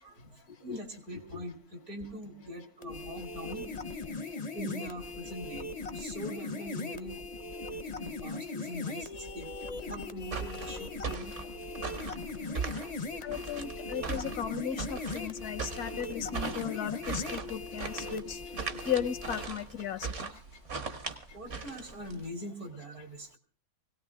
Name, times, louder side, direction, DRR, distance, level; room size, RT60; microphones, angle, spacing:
voice 1, 0.0-3.7 4.5-7.2 8.0-9.5 9.7-11.7 12.4-12.9 21.3-23.4, equal, 70° right, 3 dB, 3.5 m, -43 dB
sound 1, 2.8-19.5, left 3 dB, 35° left, 0.7 m, -39 dB
sound 2, 10.2-22.2, right 5 dB, 55° right, 1.7 m, -39 dB
voice 2, 13.2-18.4 18.8-20.3, left 9 dB, 85° left, 12 dB, 1.6 m, -35 dB
21.5 x 17.5 x 3.6 m, 0.37 s
omnidirectional pair, 1.6 m